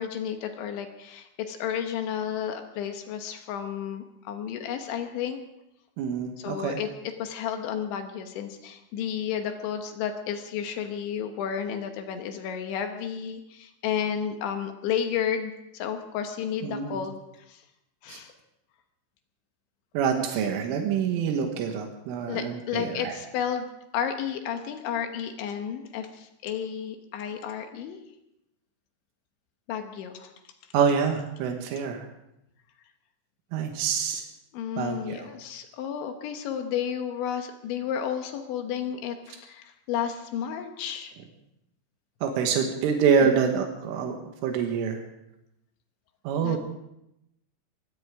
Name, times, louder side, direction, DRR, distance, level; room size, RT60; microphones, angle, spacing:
voice 1, 0.0-5.4 6.4-17.2 17.5-17.6 18.0-18.3 22.3-28.0 29.7-30.3 34.5-41.1 43.2-43.3 46.4-46.6, left 8 dB, 75° left, 6 dB, 3.4 m, -32 dB
voice 2, 6.0-6.8 16.6-17.0 18.1-18.2 20.0-23.1 30.7-32.0 33.5-34.2 34.8-35.3 42.2-44.2 44.4-45.0 46.3-46.6, right 6 dB, 90° right, 3 dB, 3.9 m, -26 dB
22.5 x 17.5 x 3.6 m, 0.84 s
omnidirectional pair, 5.6 m